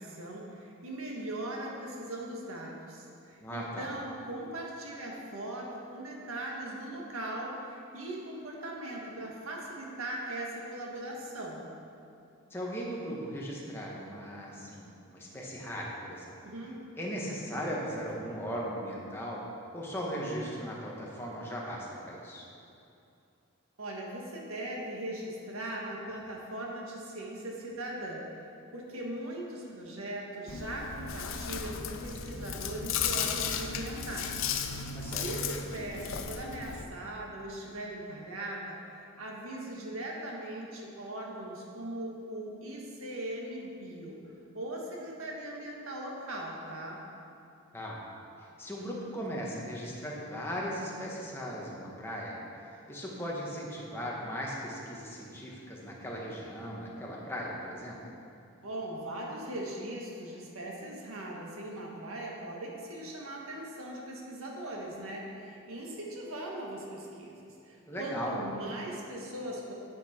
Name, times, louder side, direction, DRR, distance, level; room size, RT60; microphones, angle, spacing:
voice 1, 0.0-11.7 16.4-16.8 23.8-34.4 34.7-34.9 35.2-44.2 44.5-47.0 58.6-69.7, right 1 dB, 85° right, -2 dB, 1.7 m, -40 dB
voice 2, 3.4-3.9 12.5-16.4 17.0-19.4 19.7-22.5 35.0-35.3 47.7-48.0 48.6-52.4 52.9-58.0 67.9-68.4, equal, 10° left, -4 dB, 1.4 m, -38 dB
Chewing mastication, 30.5-36.8, left 6 dB, 70° left, 0.6 m, -35 dB
9.3 x 8.7 x 4.5 m, 2.6 s
head